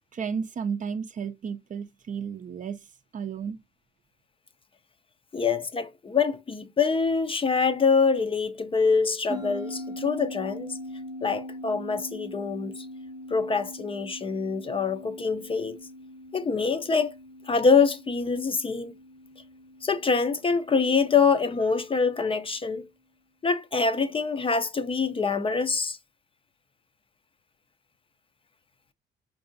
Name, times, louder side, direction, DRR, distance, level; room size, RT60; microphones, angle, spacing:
voice 1, 0.1-2.9 3.1-3.6, right 6 dB, 40° right, 0.5 m, -33 dB
voice 2, 5.3-10.7 11.2-12.7 13.3-15.8 16.3-17.2 17.5-18.9 19.8-22.9 23.4-26.0, left 5 dB, 25° left, 0.5 m, -25 dB
sound 1, 9.3-22.1, equal, 20° right, 0.8 m, -42 dB
4.6 x 2.6 x 2.6 m
cardioid pair, 90°, 20 cm